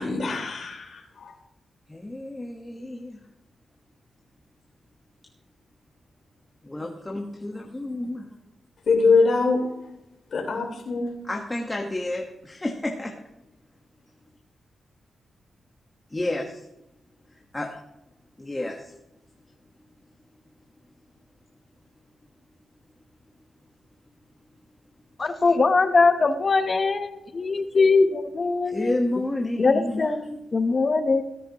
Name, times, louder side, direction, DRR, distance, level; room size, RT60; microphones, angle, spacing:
voice 1, 0.0-1.3 8.9-9.6 10.3-11.2, left 4 dB, 60° left, -2 dB, 4.1 m, -23 dB
voice 2, 1.9-3.2 6.6-8.3 11.3-13.2 16.1-16.6 17.5-17.8 18.4-18.9 28.7-30.1, left 1 dB, 15° left, 1 dB, 1.2 m, -30 dB
voice 3, 25.2-29.0 29.6-31.2, left 4 dB, 40° left, 9 dB, 0.9 m, -21 dB
17.5 x 10.0 x 2.9 m, 0.89 s
cardioid pair, 100°, 0 cm